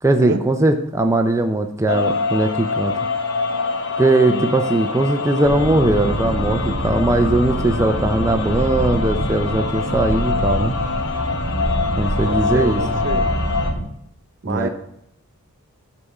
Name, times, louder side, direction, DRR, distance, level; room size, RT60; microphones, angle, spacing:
voice 1, 0.0-2.9 4.0-10.7 12.0-12.8 14.4-14.7, right 2 dB, 15° right, 5 dB, 0.4 m, -19 dB
sound 1, 1.9-13.7, left 4 dB, 75° left, 1.1 m, -25 dB
sound 2, 5.4-13.8, equal, 40° left, 1.9 m, -25 dB
voice 2, 12.2-13.3 14.4-14.7, right 3 dB, 55° right, 9 dB, 0.6 m, -26 dB
9.8 x 3.6 x 5.4 m, 0.75 s
head